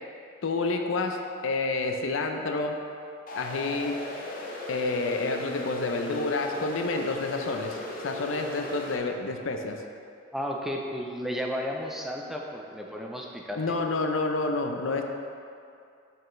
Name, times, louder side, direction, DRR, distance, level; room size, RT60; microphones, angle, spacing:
voice 1, 0.4-2.8 3.3-4.0 4.7-7.8 8.0-9.8 13.6-15.0, left 3 dB, 90° left, 4 dB, 0.6 m, -29 dB
sound 1, 3.3-9.0, left 1 dB, 45° left, 0.7 m, -37 dB
voice 2, 10.3-13.6, equal, ahead, -1 dB, 0.5 m, -33 dB
6.7 x 6.4 x 3.2 m, 2.5 s
head